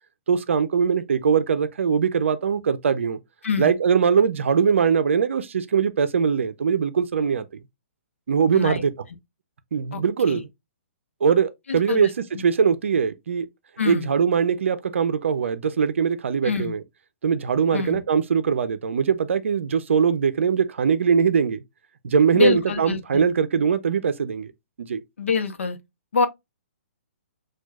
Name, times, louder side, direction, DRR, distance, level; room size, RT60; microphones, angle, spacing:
voice 1, 0.3-3.2 3.6-7.6 8.3-8.9 9.7-10.5 11.2-12.1 12.4-13.5 13.9-16.8 17.2-21.6 22.0-24.5 24.8-25.0, right 6 dB, 70° right, 0.5 m, -21 dB
voice 2, 11.7-12.1 12.3-12.4 13.8-14.1 16.4-16.7 17.7-18.0 22.3-23.2 25.2-25.8 26.1-26.3, left 5 dB, 75° left, 0.8 m, -25 dB
6.0 x 2.3 x 2.3 m
figure-of-eight pair, 125°, 7 cm